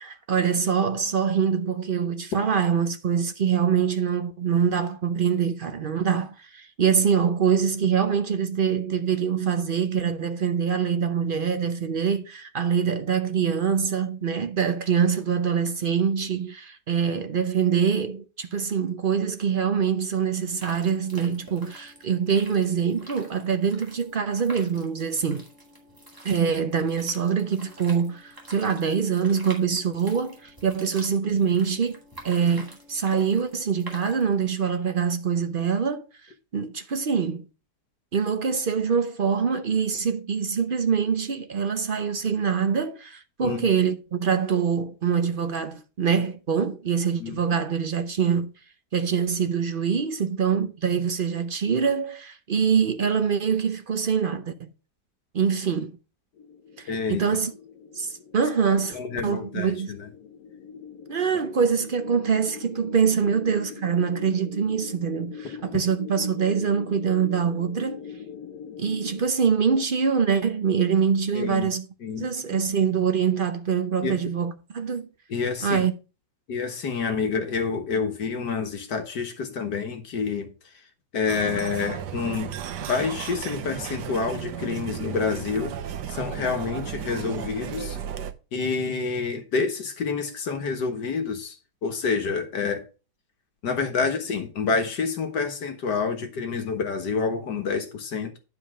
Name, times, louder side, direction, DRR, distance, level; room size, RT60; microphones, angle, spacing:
voice 1, 0.0-25.5 26.2-32.0 32.2-36.1 36.5-37.4 38.1-48.5 48.9-54.7 55.3-56.0 56.8-57.5 58.0-59.0 59.2-59.9 61.1-68.1 68.8-71.8 72.2-75.1 75.6-75.9, right 7 dB, 55° right, 0.6 m, -24 dB
sound 1, 20.4-34.5, right 1 dB, 10° right, 2.1 m, -47 dB
sound 2, 56.4-69.2, left 7 dB, 65° left, 1.3 m, -42 dB
voice 2, 56.9-57.2 58.7-60.1 71.3-71.7 72.0-72.6 74.0-74.2 75.3-75.8 76.5-80.8 81.1-82.5 82.9-85.8 86.1-88.0 88.5-92.9 93.6-98.4, left 5 dB, 85° left, 2.0 m, -28 dB
sound 3, 81.3-88.3, right 9 dB, 85° right, 1.4 m, -34 dB
10.0 x 4.7 x 4.9 m
omnidirectional pair, 1.8 m